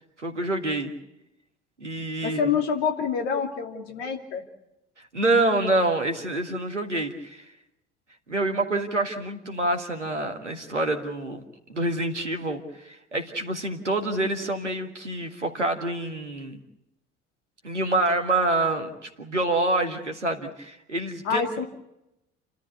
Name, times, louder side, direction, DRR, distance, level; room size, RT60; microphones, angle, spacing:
voice 1, 0.2-0.9 1.8-2.4 5.1-7.5 8.3-11.4 11.7-16.6 17.6-21.4, right 2 dB, 90° right, 4 dB, 1.8 m, -27 dB
voice 2, 2.2-4.4 21.2-21.6, left 7 dB, 65° left, 3 dB, 2.8 m, -26 dB
29.5 x 13.0 x 8.3 m, 0.87 s
figure-of-eight pair, 55°, 35 cm